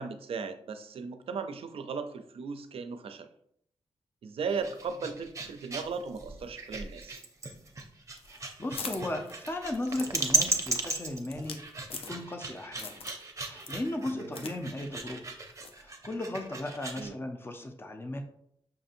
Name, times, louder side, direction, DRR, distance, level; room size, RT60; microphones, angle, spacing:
voice 1, 0.0-3.3 4.2-7.2 14.1-14.5 17.0-17.1, right 5 dB, 70° right, 8 dB, 0.4 m, -37 dB
sound 1, 4.4-17.1, right 3 dB, 30° right, 0.6 m, -35 dB
sound 2, 8.1-12.5 12.8-13.3 13.6-14.6 14.8-14.9 15.6-15.8, left 5 dB, 70° left, 0.5 m, -43 dB
voice 2, 8.3-11.6 11.9-13.0 13.5-15.3 15.8-18.2, left 1 dB, 25° left, 5 dB, 0.6 m, -36 dB
5.6 x 2.6 x 2.5 m, 0.71 s
cardioid pair, 70°, 10 cm